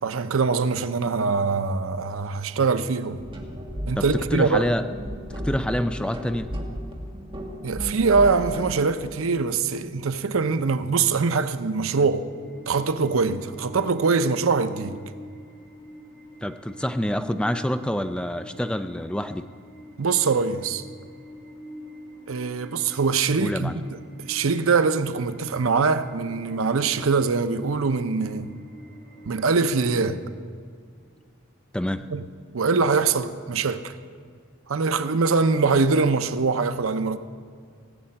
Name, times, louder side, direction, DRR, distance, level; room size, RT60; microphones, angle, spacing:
voice 1, 0.0-3.2 3.9-4.7 7.6-12.3 12.7-15.0 20.0-20.8 22.3-23.9 24.2-28.5 29.2-30.2 32.1-32.2 32.5-33.9 34.7-37.2, right 4 dB, 90° right, 0.6 m, -23 dB
sound 1, 3.2-8.8, equal, 25° right, 1.5 m, -34 dB
voice 2, 4.0-4.9 5.4-6.5 16.4-19.5 23.4-23.8 31.7-32.0, equal, 5° left, 0.4 m, -27 dB
sound 2, 12.1-30.2, equal, 30° left, 1.9 m, -46 dB
17.0 x 6.8 x 8.6 m
head